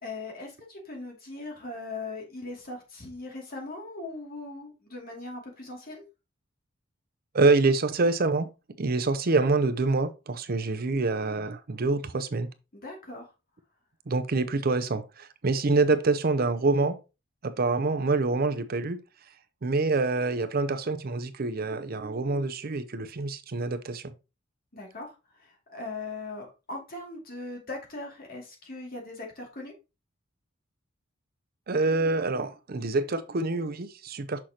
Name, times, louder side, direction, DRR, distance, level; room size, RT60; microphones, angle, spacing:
voice 1, 0.0-6.1 12.7-13.3 24.7-29.7, left 2 dB, 45° left, 2.5 m, -39 dB
voice 2, 7.3-8.5 8.8-12.5 14.1-17.0 17.4-19.0 19.6-24.1 31.7-34.4, right 3 dB, 50° right, 0.6 m, -26 dB
6.4 x 6.0 x 2.9 m
head